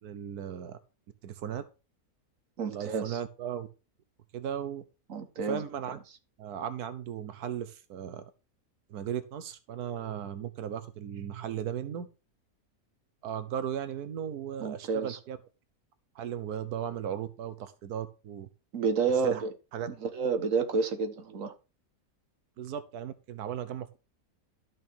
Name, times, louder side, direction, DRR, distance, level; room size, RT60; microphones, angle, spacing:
voice 1, 0.0-0.8 1.2-1.7 2.7-3.7 4.3-4.8 5.5-6.0 6.4-8.2 8.9-12.1 13.2-15.4 16.1-18.5 19.2-19.4 19.7-19.9 22.6-24.0, right 9 dB, 90° right, 1.4 m, -36 dB
voice 2, 2.6-3.2 5.1-5.6 14.6-15.2 18.7-19.5 19.9-21.5, right 5 dB, 60° right, 1.7 m, -30 dB
12.5 x 6.3 x 4.5 m
omnidirectional pair, 1.6 m